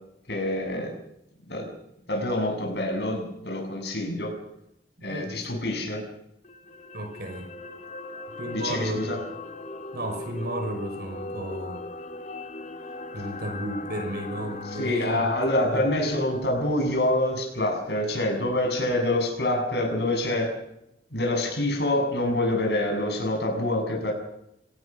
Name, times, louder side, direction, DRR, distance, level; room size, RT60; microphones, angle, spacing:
voice 1, 0.3-0.9 1.5-1.7 2.1-4.3 5.0-6.0 8.5-9.2 14.8-20.5 21.1-24.1, left 1 dB, 70° left, 3 dB, 7.6 m, -26 dB
voice 2, 5.0-5.3 6.9-7.5 8.4-9.1 9.9-11.9 13.1-15.8, right 1 dB, 60° right, 5 dB, 6.0 m, -33 dB
sound 1, 6.4-18.8 19.1-19.3, left 2 dB, 45° left, 2.3 m, -40 dB
25.5 x 18.5 x 6.3 m, 0.82 s
head